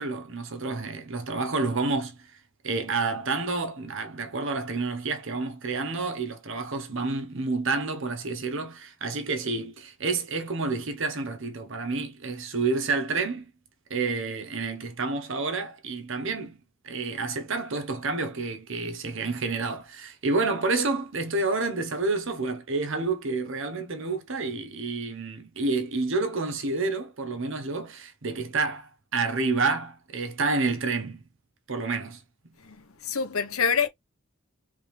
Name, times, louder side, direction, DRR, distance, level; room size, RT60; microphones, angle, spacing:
voice 1, 0.0-2.2 2.6-13.5 13.9-16.6 16.8-31.2 31.7-32.2, right 3 dB, 65° right, 1.1 m, -29 dB
voice 2, 32.6-33.9, left 6 dB, 90° left, 1.1 m, -26 dB
3.6 x 3.5 x 3.3 m
head